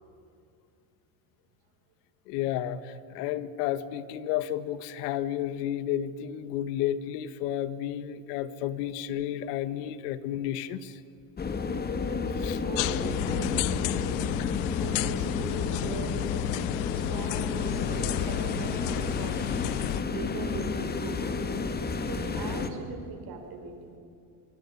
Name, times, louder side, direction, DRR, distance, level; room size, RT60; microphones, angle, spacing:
voice 1, 2.3-11.0 12.4-12.6, left 11 dB, 85° left, 14 dB, 1.6 m, -32 dB
voice 2, 8.4-8.7 12.6-13.8 14.8-16.2 16.9-19.4 20.1-21.4 22.0-23.8, right 5 dB, 50° right, 5 dB, 5.6 m, -40 dB
sound 1, 11.4-22.7, left 4 dB, 20° left, 1.8 m, -31 dB
sound 2, 12.8-20.0, left 16 dB, 70° left, 0.9 m, -32 dB
25.0 x 23.0 x 9.9 m, 2.5 s
cardioid pair, 145°, 47 cm